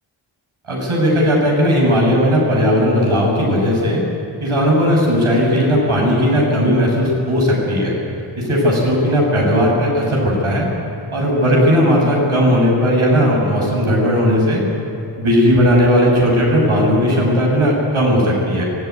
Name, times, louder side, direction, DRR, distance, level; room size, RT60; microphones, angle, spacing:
voice 1, 0.6-4.0 4.4-8.0 8.4-10.7 11.1-14.6 15.2-18.6, equal, 80° right, -3 dB, 7.3 m, -16 dB
23.5 x 16.0 x 9.7 m, 2.6 s
cardioid pair, 55°, 49 cm